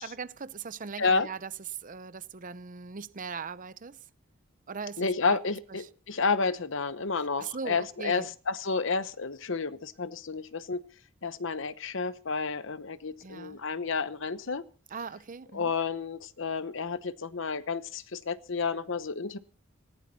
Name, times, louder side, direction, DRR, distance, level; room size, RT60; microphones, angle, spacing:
voice 1, 0.0-4.0 4.7-5.4 5.8-5.9 7.4-8.3 13.2-13.6 14.9-15.7, right 5 dB, 40° right, 0.7 m, -39 dB
voice 2, 5.0-10.8 11.2-14.6 15.5-19.4, left 4 dB, 65° left, 1.0 m, -30 dB
19.5 x 16.5 x 4.2 m
head